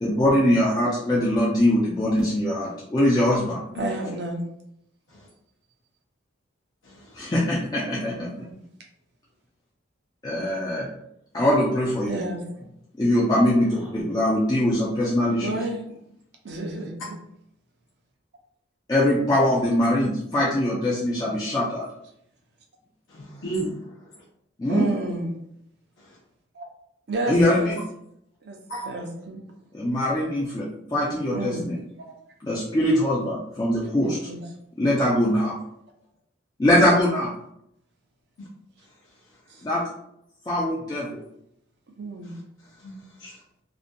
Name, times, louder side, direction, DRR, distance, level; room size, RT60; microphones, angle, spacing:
voice 1, 0.0-3.6 7.1-8.3 10.2-10.9 11.3-12.2 13.0-15.5 18.9-21.9 24.6-24.9 27.3-27.8 29.7-30.6 30.9-31.8 32.4-34.2 34.8-35.5 36.6-37.3 39.6-39.8 40.5-41.2, left 1 dB, 20° left, -6 dB, 0.3 m, -22 dB
voice 2, 3.7-4.5 8.0-8.6 12.0-12.4 15.3-16.0 16.4-17.2 24.7-25.3 26.5-26.6 27.1-27.7 28.4-28.6 28.8-29.4 31.3-31.7 32.1-32.2 34.0-34.4 39.5-39.6 42.0-42.3, right 2 dB, 55° right, 2 dB, 0.5 m, -31 dB
voice 3, 6.8-7.3 23.1-23.8 28.7-28.9 38.4-38.5 42.8-43.4, right 2 dB, 70° left, -5 dB, 0.5 m, -34 dB
2.5 x 2.2 x 2.5 m, 0.76 s
head